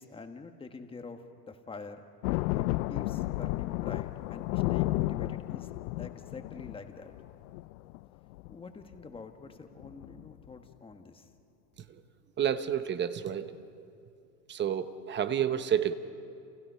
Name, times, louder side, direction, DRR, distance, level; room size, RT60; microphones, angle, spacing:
voice 1, 0.0-2.0 2.5-5.7 6.0-7.1 8.5-11.3, left 4 dB, 10° left, 6 dB, 1.5 m, -46 dB
sound 1, 2.2-8.0 8.3-8.5 8.9-9.2 9.5-9.6 9.8-10.5, left 18 dB, 60° left, 0.6 m, -32 dB
voice 2, 12.4-13.5 14.5-15.9, right 9 dB, 20° right, 11 dB, 0.9 m, -29 dB
30.0 x 28.5 x 5.7 m, 2.6 s
supercardioid pair, 130°, 49 cm